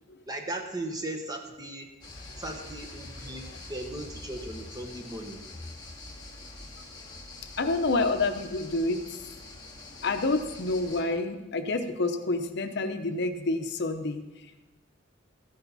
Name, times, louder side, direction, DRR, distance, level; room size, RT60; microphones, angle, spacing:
voice 1, 0.3-1.9 2.4-5.4, right 1 dB, 20° right, 3 dB, 1.3 m, -37 dB
sound 1, 2.0-11.0, left 2 dB, 25° left, 1.9 m, -45 dB
voice 2, 7.6-9.0 10.0-14.7, left 2 dB, 60° left, 8 dB, 0.8 m, -28 dB
14.0 x 10.5 x 4.1 m, 1.1 s
head